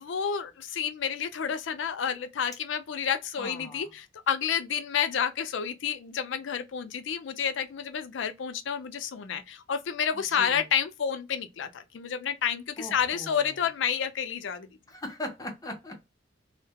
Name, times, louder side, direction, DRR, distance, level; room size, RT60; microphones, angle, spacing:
voice 1, 0.0-14.7, left 7 dB, 80° left, 0.4 m, -30 dB
voice 2, 3.4-3.9 10.1-10.7 12.8-13.7 14.9-16.0, left 1 dB, 20° left, 0.6 m, -40 dB
2.2 x 2.1 x 2.7 m
head